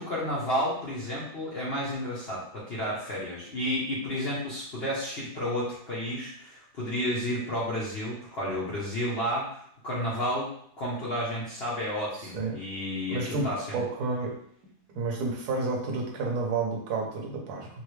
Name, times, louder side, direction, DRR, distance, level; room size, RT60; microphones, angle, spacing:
voice 1, 0.0-10.5 10.8-13.8, equal, 60° left, -7 dB, 0.6 m, -31 dB
voice 2, 13.1-14.3 14.9-17.7, right 3 dB, 65° right, -1 dB, 1.2 m, -30 dB
4.1 x 2.1 x 3.1 m, 0.65 s
omnidirectional pair, 2.1 m